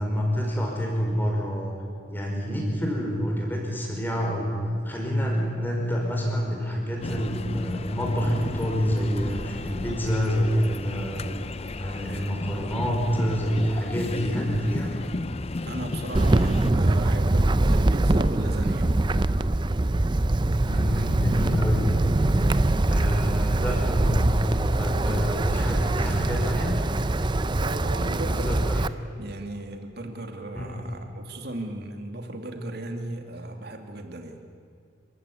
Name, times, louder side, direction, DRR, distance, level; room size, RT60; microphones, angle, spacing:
voice 1, 0.0-1.7 2.1-11.3 11.8-14.9 20.6-21.8 22.2-22.4 22.9-26.8 27.1-27.3 28.2-28.8 30.5-30.8, equal, 10° left, -1 dB, 5.0 m, -27 dB
sound 1, 7.0-16.7, left 2 dB, 30° left, 0.5 m, -33 dB
voice 2, 15.7-18.9 24.9-25.4 27.6-28.6 29.2-34.4, right 1 dB, 55° right, 4 dB, 2.5 m, -36 dB
Wind, 16.1-28.9, right 2 dB, 25° right, 0.5 m, -23 dB
27.0 x 15.5 x 9.9 m, 2.4 s
head